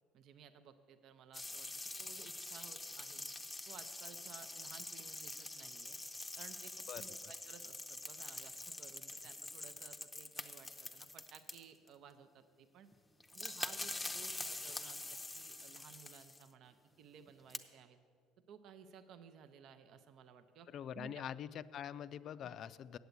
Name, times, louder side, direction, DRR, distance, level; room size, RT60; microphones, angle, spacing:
voice 1, 0.1-1.7 2.0-3.2 3.7-6.0 6.4-12.9 13.3-18.0 18.5-20.7 20.9-21.3 22.4-22.6, right 7 dB, 60° right, 10 dB, 0.6 m, -57 dB
sound 1, 1.3-11.9 12.9-13.0 13.2-16.5 17.3-17.6, left 2 dB, 10° left, 0.6 m, -45 dB
voice 2, 20.7-23.0, left 9 dB, 55° left, 15 dB, 0.3 m, -44 dB
8.0 x 7.9 x 8.1 m, 2.1 s
supercardioid pair, 95°, 0 cm